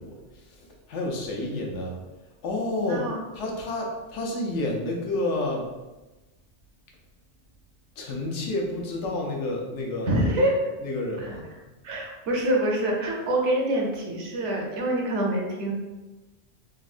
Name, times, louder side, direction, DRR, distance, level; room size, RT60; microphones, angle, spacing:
voice 1, 0.0-2.0 2.4-3.1 3.3-5.7 8.0-10.1 10.8-11.4, left 2 dB, 80° left, 0 dB, 1.0 m, -30 dB
voice 2, 2.8-3.2 10.1-10.7 11.2-11.3 11.8-15.7, right 1 dB, 80° right, 0 dB, 1.0 m, -25 dB
3.5 x 2.0 x 2.4 m, 1.1 s
omnidirectional pair, 1.2 m